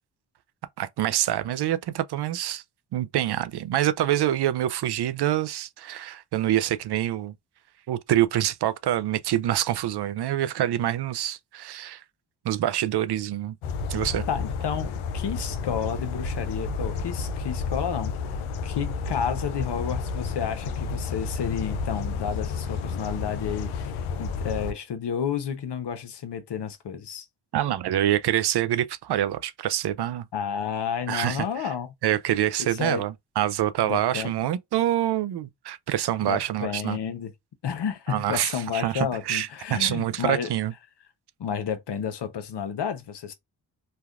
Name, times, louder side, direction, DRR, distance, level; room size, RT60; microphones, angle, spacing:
voice 1, 0.8-2.6 2.9-7.3 7.9-12.0 12.4-13.6 13.9-14.2 27.5-30.3 31.1-31.7 32.0-37.0 38.1-40.7, right 12 dB, 60° right, 0.5 m, -26 dB
sound 1, 13.6-24.7, left 5 dB, 85° left, 0.5 m, -31 dB
voice 2, 14.3-18.1 18.6-27.3 30.3-31.9 32.6-33.1 33.8-34.3 36.2-37.3 37.6-40.5 41.4-43.3, left 7 dB, 60° left, 0.8 m, -31 dB
3.3 x 2.2 x 2.3 m
supercardioid pair, 45°, 47 cm